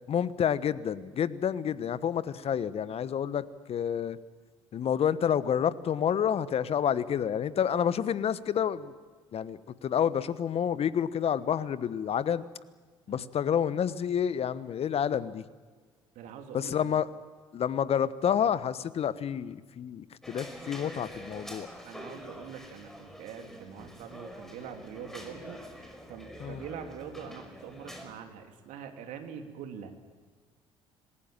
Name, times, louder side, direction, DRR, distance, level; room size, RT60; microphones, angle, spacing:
voice 1, 0.1-4.2 4.7-8.9 9.3-12.4 13.1-15.4 16.5-17.1 17.5-21.7 26.4-26.6, left 8 dB, 45° left, 16 dB, 1.1 m, -29 dB
voice 2, 16.1-16.9 21.8-29.9, right 7 dB, 65° right, 5 dB, 2.8 m, -44 dB
sound 1, 20.2-28.1, equal, 5° left, 5.4 m, -46 dB
27.0 x 20.0 x 7.5 m, 1.5 s
hypercardioid pair, 55°, 14 cm